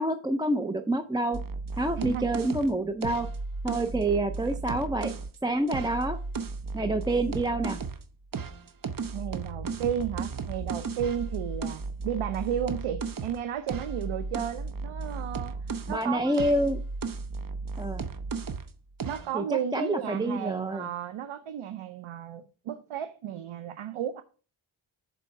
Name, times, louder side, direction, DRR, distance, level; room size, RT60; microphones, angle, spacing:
voice 1, 0.0-1.4 1.8-3.3 3.6-5.1 5.4-6.2 6.7-7.8 15.9-16.8 17.8-18.1 19.3-19.4 19.7-20.9, right 1 dB, 10° right, 0.4 m, -27 dB
sound 1, 1.3-5.3 5.7-8.0 8.3-16.0 16.3-18.7 19.0-19.3, right 4 dB, 45° right, 0.7 m, -35 dB
voice 2, 9.1-16.4 19.0-24.2, right 9 dB, 90° right, 0.7 m, -33 dB
7.0 x 4.3 x 5.8 m
wide cardioid pair, 115°, 48 cm